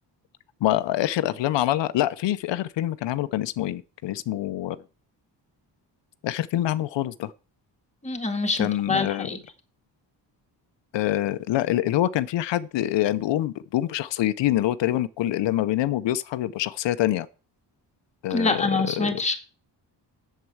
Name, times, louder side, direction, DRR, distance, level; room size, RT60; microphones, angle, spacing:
voice 1, 0.6-4.8 6.2-7.3 8.6-9.3 10.9-17.3 18.2-19.1, left 13 dB, 90° left, 0.6 m, -25 dB
voice 2, 8.0-9.4 18.3-19.4, left 3 dB, 15° left, 1.9 m, -25 dB
7.8 x 7.5 x 7.1 m
cardioid pair, 110°, 43 cm